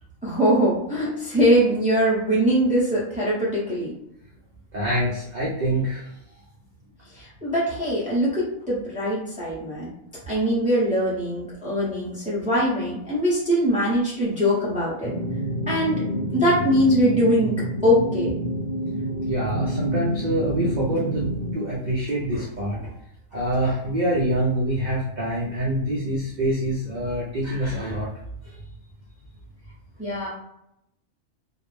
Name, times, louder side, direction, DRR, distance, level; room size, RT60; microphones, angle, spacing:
voice 1, 0.2-3.9 7.1-9.9 10.3-15.2 15.7-16.0 16.3-17.5 17.8-18.3 30.0-30.3, equal, 5° right, -7 dB, 0.7 m, -22 dB
voice 2, 4.7-6.1 19.2-22.8 23.3-28.1 28.4-28.6, right 1 dB, 50° right, -6 dB, 0.5 m, -25 dB
sound 1, 15.0-21.5, right 1 dB, 55° left, 0.9 m, -28 dB
2.4 x 2.0 x 3.1 m, 0.81 s
omnidirectional pair, 1.4 m